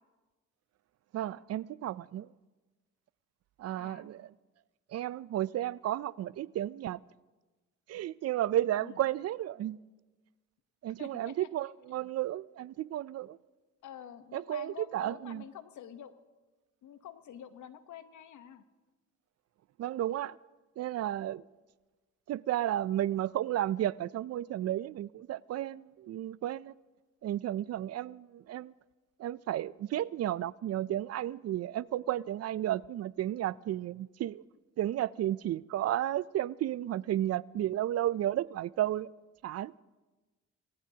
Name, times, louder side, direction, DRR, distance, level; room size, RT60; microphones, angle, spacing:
voice 1, 1.1-2.3 3.6-4.3 4.9-7.0 7.9-9.8 10.8-13.4 14.3-15.4 19.8-20.4 20.8-21.4 22.3-26.7 27.2-28.7 29.2-34.4 34.8-39.1 39.4-39.7, right 12 dB, 55° right, 0.4 m, -33 dB
voice 2, 3.7-4.1 8.8-9.0 10.9-11.5 13.8-16.1 16.8-18.6, left 9 dB, 75° left, 1.1 m, -48 dB
27.0 x 18.5 x 2.8 m
cardioid pair, 90°, 30 cm